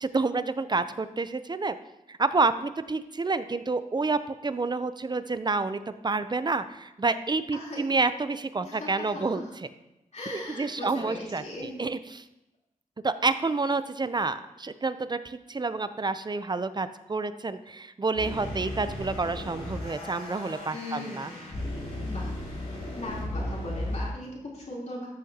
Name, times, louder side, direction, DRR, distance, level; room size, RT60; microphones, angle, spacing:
voice 1, 0.0-1.8 2.1-9.4 10.3-12.2 13.0-21.3, right 3 dB, 30° right, 12 dB, 0.5 m, -29 dB
voice 2, 7.5-7.8 8.6-9.5 10.1-11.8 20.7-21.6 22.1-22.3 22.9-25.1, left 1 dB, 55° left, -4 dB, 3.4 m, -38 dB
sound 1, 18.1-24.1, left 1 dB, 90° left, 3.4 m, -35 dB
13.5 x 6.3 x 2.9 m, 0.93 s
cardioid pair, 65°, 14 cm